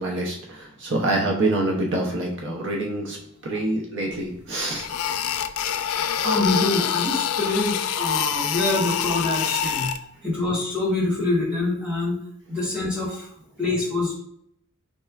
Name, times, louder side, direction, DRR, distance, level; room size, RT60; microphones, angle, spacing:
voice 1, 0.0-3.2 3.4-4.9, right 2 dB, 55° right, 0 dB, 0.6 m, -26 dB
sound 1, 4.1-4.2 4.7-10.0, left 8 dB, 80° left, 0.3 m, -25 dB
voice 2, 6.0-9.9 10.2-12.2 12.5-13.3 13.6-14.1, left 2 dB, 5° right, -6 dB, 1.0 m, -25 dB
4.2 x 3.2 x 2.3 m, 0.72 s
head